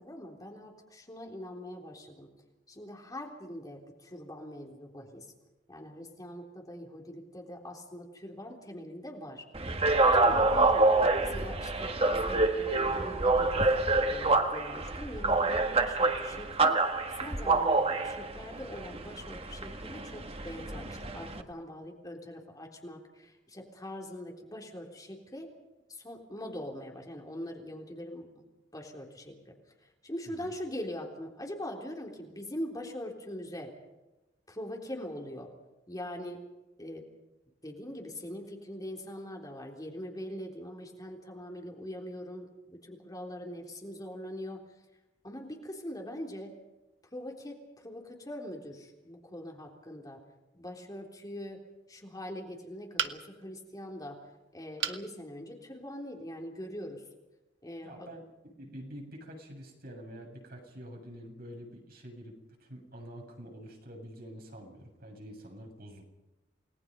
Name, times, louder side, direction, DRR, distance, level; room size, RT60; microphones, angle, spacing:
voice 1, 0.0-2.3 2.7-5.3 5.7-9.4 10.1-10.9 11.2-25.5 25.9-28.3 28.7-33.7 34.5-35.5 35.9-36.4 36.8-37.0 37.6-44.6 45.2-46.5 47.1-50.2 50.5-51.6 51.9-57.0 57.6-58.1, left 1 dB, 20° left, 1 dB, 3.7 m, -42 dB
sound 1, 9.5-21.4, right 3 dB, 35° right, 1.7 m, -27 dB
sound 2, 53.0-53.5 54.8-55.1 55.6-55.7 56.1-56.2, right 7 dB, 75° right, 1.6 m, -33 dB
voice 2, 57.8-66.0, equal, 55° right, 1 dB, 7.5 m, -47 dB
29.5 x 20.0 x 5.4 m, 1.0 s
head